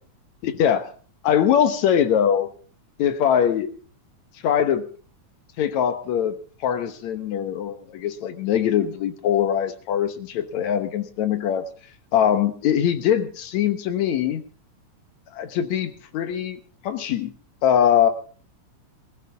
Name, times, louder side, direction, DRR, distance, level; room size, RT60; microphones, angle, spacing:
voice 1, 0.4-0.9 1.2-2.5 3.0-3.7 4.4-4.9 5.6-11.7 12.1-14.4 15.3-17.3 17.6-18.1, left 9 dB, 70° left, 10 dB, 2.4 m, -22 dB
20.5 x 14.5 x 3.5 m, 0.39 s
omnidirectional pair, 3.4 m